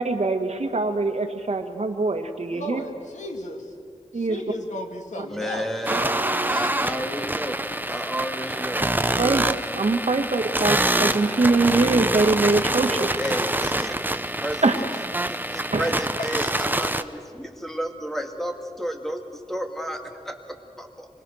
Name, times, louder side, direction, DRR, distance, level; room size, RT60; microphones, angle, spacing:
voice 1, 0.0-2.8 4.1-4.4 5.9-6.5 9.2-9.5 9.7-13.2 14.6-14.8 15.7-15.8, right 3 dB, 65° right, 5 dB, 1.7 m, -23 dB
voice 2, 2.5-3.7 4.1-5.7 16.2-16.3, left 1 dB, 80° left, 3 dB, 2.4 m, -34 dB
voice 3, 5.3-8.8 12.8-13.9 14.4-14.9 15.3-21.1, equal, 5° left, 4 dB, 2.2 m, -32 dB
sound 1, 5.8-17.0, right 1 dB, 15° right, 0.8 m, -26 dB
25.5 x 21.0 x 6.4 m, 2.4 s
wide cardioid pair, 80°, 12 cm